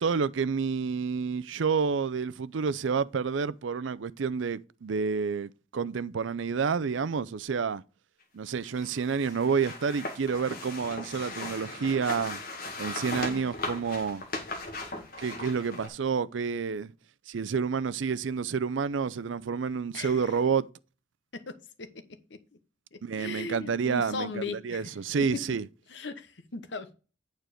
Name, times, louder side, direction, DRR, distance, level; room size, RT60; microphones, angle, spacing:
voice 1, 0.0-7.8 8.3-12.4 12.8-14.2 15.2-16.9 17.3-20.7 23.0-25.7, right 5 dB, 80° right, 0.5 m, -29 dB
sound 1, 8.6-15.9, left 2 dB, 50° left, 1.9 m, -38 dB
voice 2, 13.2-13.5 19.9-20.1 21.3-21.9 22.3-22.4 22.9-24.8 25.9-26.9, left 3 dB, 65° left, 1.0 m, -38 dB
9.1 x 4.6 x 5.0 m
head